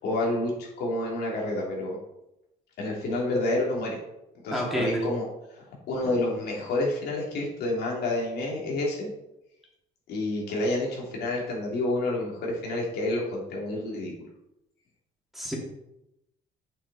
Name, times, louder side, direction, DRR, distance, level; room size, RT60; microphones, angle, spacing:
voice 1, 0.0-2.0 2.8-4.0 4.4-5.2 5.5-9.1 10.1-14.1, left 2 dB, 75° left, -2 dB, 2.8 m, -29 dB
voice 2, 4.5-5.1 15.3-15.6, equal, ahead, -3 dB, 2.6 m, -28 dB
8.4 x 6.3 x 4.1 m, 0.86 s
cardioid pair, 110°, 17 cm